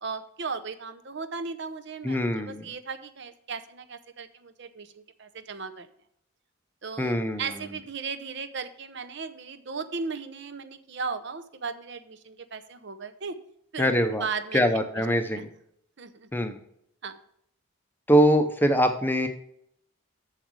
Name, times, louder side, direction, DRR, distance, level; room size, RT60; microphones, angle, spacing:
voice 1, 0.0-5.9 6.8-13.4 13.7-15.1 15.3-15.5 16.0-16.3 17.0-17.2, right 5 dB, 55° right, 11 dB, 0.7 m, -36 dB
voice 2, 2.0-2.7 7.0-7.5 13.8-14.3 14.5-15.5 16.3-16.6 18.1-19.3, equal, 10° left, 7 dB, 0.7 m, -23 dB
7.8 x 7.3 x 4.7 m, 0.72 s
head